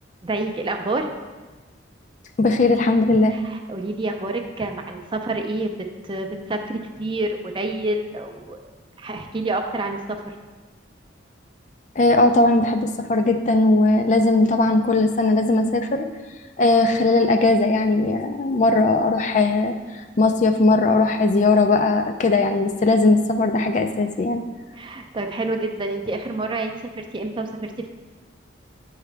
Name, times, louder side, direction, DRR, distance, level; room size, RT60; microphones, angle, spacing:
voice 1, 0.2-1.1 3.3-5.7 6.1-8.7 9.0-10.3 24.7-27.9, right 2 dB, 25° right, 5 dB, 0.4 m, -28 dB
voice 2, 2.4-3.3 12.0-16.1 16.6-24.4, left 2 dB, 40° left, 7 dB, 0.3 m, -19 dB
8.0 x 4.8 x 3.3 m, 1.3 s
head